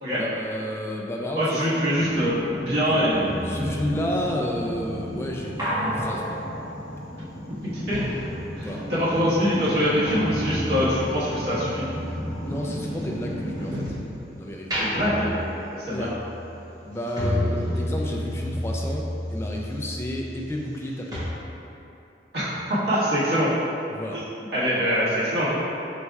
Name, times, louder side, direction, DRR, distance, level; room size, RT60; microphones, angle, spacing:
voice 1, 0.1-1.7 3.4-6.4 8.6-8.8 12.4-13.9 14.3-14.8 15.9-16.1 16.9-21.2 23.9-24.2 24.7-24.9, left 1 dB, 15° left, -1 dB, 0.3 m, -31 dB
voice 2, 1.4-3.2 7.7-8.0 8.6-11.9 14.8-15.4 15.8-16.1 22.3-23.5 24.1-24.2 24.5-25.5, equal, 65° right, -11 dB, 1.3 m, -24 dB
sound 1, 1.9-13.7, equal, 75° left, 0.7 m, -34 dB
sound 2, 3.1-9.0 9.3-14.2 14.6-20.8 21.1-21.2, equal, 20° right, 1.0 m, -32 dB
4.1 x 2.3 x 4.5 m, 2.9 s
head